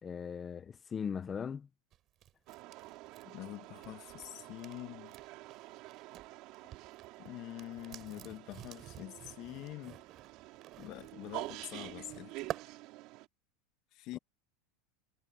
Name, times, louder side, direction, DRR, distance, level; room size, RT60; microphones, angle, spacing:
voice 1, 0.0-1.7, left 7 dB, 20° left, 1.2 m, -39 dB
sound 1, 1.9-6.3 6.5-12.7, right 12 dB, 35° right, 7.0 m, -50 dB
sound 2, 2.5-13.3, right 20 dB, 50° right, 4.3 m, -48 dB
voice 2, 3.2-5.1 7.2-10.0 10.8-12.5 13.9-14.2, left 16 dB, 45° left, 1.6 m, -45 dB
supercardioid pair, 150°, 0 cm